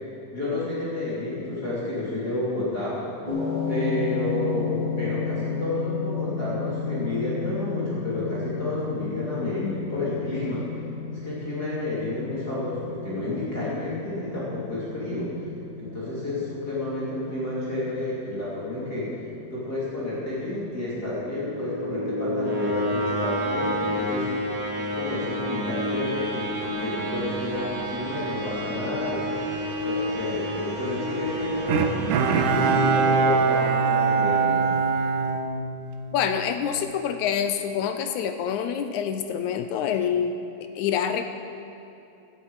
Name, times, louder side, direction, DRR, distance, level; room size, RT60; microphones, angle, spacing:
voice 1, 0.3-3.0 3.7-10.6 11.1-15.4 15.8-19.2 19.5-24.3 24.8-29.5 29.8-31.9 32.4-34.7, left 2 dB, 30° left, -9 dB, 3.0 m, -30 dB
sound 1, 3.3-21.5, left 5 dB, 15° right, 1.9 m, -33 dB
voice 2, 9.4-9.8 36.1-40.4 40.8-41.2, left 8 dB, 80° left, 8 dB, 1.9 m, -26 dB
sound 2, 21.1-34.1, equal, 55° right, 2.3 m, -30 dB
Bowed string instrument, 31.7-36.2 36.6-36.7, right 5 dB, 80° right, 2.4 m, -22 dB
16.5 x 11.5 x 4.8 m, 2.8 s
omnidirectional pair, 3.6 m